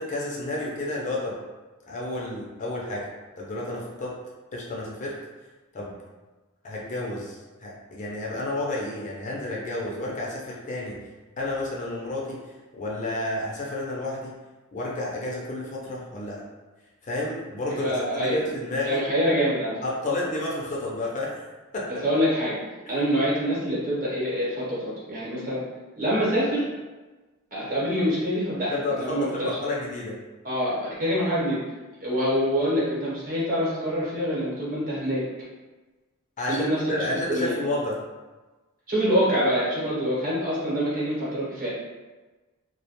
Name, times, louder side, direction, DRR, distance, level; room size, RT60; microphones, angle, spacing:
voice 1, 0.0-1.4 1.9-3.1 3.4-4.2 4.5-5.2 5.7-6.0 6.6-11.0 11.4-12.4 12.7-14.3 14.7-16.4 17.1-19.0 19.8-21.4 21.7-22.0 22.9-23.0 28.7-30.2 36.4-36.6 36.9-38.0, left 1 dB, 35° left, -4 dB, 0.4 m, -31 dB
voice 2, 17.7-18.4 18.8-19.7 22.0-22.6 22.9-25.6 26.0-26.7 27.5-29.6 30.4-31.6 32.0-35.2 36.5-37.6 38.9-41.7, equal, 40° right, -8 dB, 1.0 m, -25 dB
2.3 x 2.1 x 2.8 m, 1.2 s
head